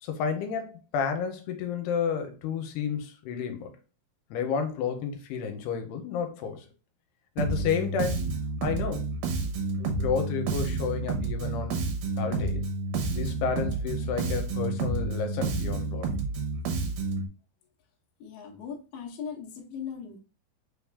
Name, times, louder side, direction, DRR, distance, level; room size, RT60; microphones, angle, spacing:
voice 1, 0.0-3.7 4.3-6.7 7.4-8.2 8.6-9.1 9.8-11.8 12.2-12.6 13.1-16.1, left 6 dB, 90° left, 2.7 m, -31 dB
Bass guitar, 7.4-17.3, right 3 dB, 75° right, 2.5 m, -30 dB
voice 2, 18.2-20.2, left 7 dB, 65° left, 1.9 m, -39 dB
5.9 x 3.5 x 2.3 m
omnidirectional pair, 4.6 m